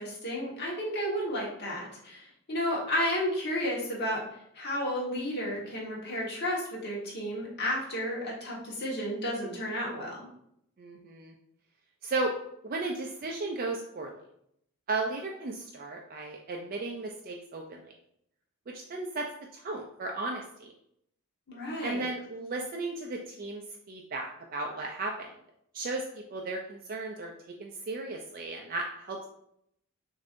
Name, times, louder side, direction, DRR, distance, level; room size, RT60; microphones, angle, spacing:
voice 1, 0.0-4.2 4.5-10.3 21.5-22.0, equal, 50° left, -3 dB, 1.4 m, -32 dB
voice 2, 10.8-11.3 12.0-12.3 12.6-14.2 14.9-17.8 18.7-19.3 19.5-20.7 21.8-23.6 23.9-25.3 25.7-27.3 27.6-29.2, right 3 dB, 40° right, 1 dB, 0.4 m, -35 dB
6.6 x 2.7 x 2.6 m, 0.73 s
head